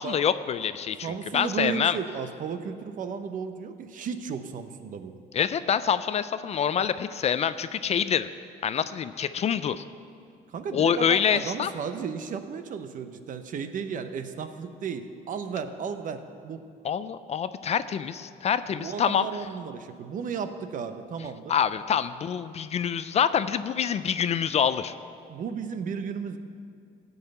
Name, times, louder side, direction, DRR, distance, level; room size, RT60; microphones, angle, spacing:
voice 1, 0.0-1.1 1.3-2.0 5.3-8.3 8.6-9.8 10.7-11.7 16.8-19.3 21.5-24.9, left 8 dB, 40° left, 13 dB, 0.4 m, -26 dB
voice 2, 1.0-5.1 10.5-16.6 18.7-21.5 25.3-26.4, right 6 dB, 50° right, 9 dB, 0.8 m, -34 dB
14.5 x 5.5 x 8.0 m, 2.3 s
cardioid pair, 110°, 17 cm